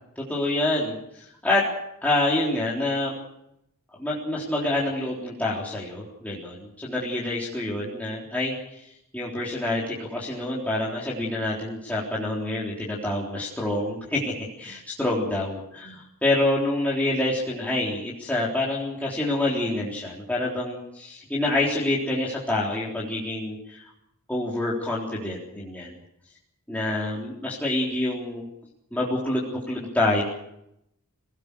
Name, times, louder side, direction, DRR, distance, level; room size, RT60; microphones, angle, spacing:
voice 1, 0.2-1.6 2.0-3.1 4.0-8.8 9.1-23.9 24.3-25.9 26.7-28.5 28.9-30.2, left 2 dB, 5° left, -6 dB, 3.7 m, -27 dB
26.0 x 18.5 x 6.8 m, 0.81 s
head